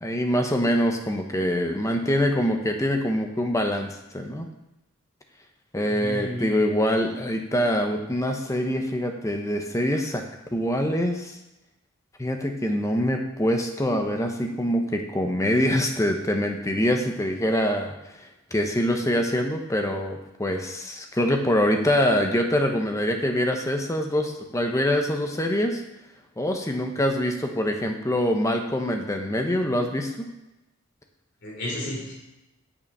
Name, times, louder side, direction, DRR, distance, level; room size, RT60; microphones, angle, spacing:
voice 1, 0.0-4.5 5.7-10.2 10.5-11.4 12.2-25.8 26.4-30.3, equal, 15° left, 4 dB, 0.8 m, -24 dB
voice 2, 5.9-6.5 31.4-32.1, left 1 dB, 55° left, -3 dB, 3.0 m, -32 dB
6.8 x 5.9 x 5.4 m, 0.94 s
head